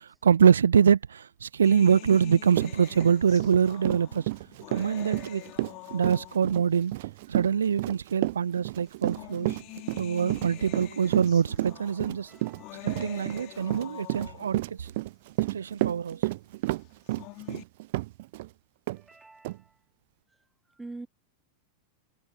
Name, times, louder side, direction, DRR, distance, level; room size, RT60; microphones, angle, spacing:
voice 1, 0.2-4.2 4.7-5.4 5.9-6.9 7.3-9.5 10.0-12.3 12.8-14.6 15.5-16.2, right 7 dB, 70° right, 1.3 m, -24 dB
sound 1, 1.6-6.7 7.6-7.7 8.8-14.7 16.9-17.6, left 24 dB, 40° left, 6.0 m, -45 dB
Run, 2.1-2.2 2.5-18.5 18.9-19.0 19.4-19.6, right 19 dB, 50° right, 0.7 m, -31 dB
voice 2, 19.1-19.5 20.8-21.1, right 3 dB, 10° right, 0.5 m, -42 dB
figure-of-eight pair, 90°, 0 cm